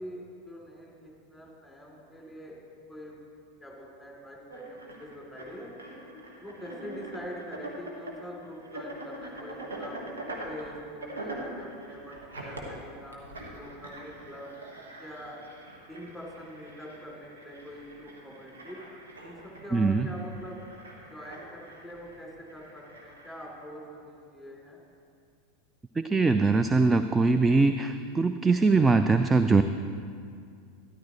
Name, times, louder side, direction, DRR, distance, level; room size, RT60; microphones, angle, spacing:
voice 1, 0.0-2.6 2.9-3.2 3.6-6.0 6.4-10.0 10.4-14.5 15.0-15.4 15.9-18.8 19.2-20.6 21.1-24.8, equal, ahead, -3 dB, 3.3 m, -44 dB
sound 1, 4.5-23.5, right 1 dB, 75° right, 1.7 m, -44 dB
voice 2, 19.7-20.1 26.0-29.6, right 3 dB, 15° right, 9 dB, 0.4 m, -22 dB
13.0 x 12.0 x 3.2 m, 2.3 s
figure-of-eight pair, 85°, 0 cm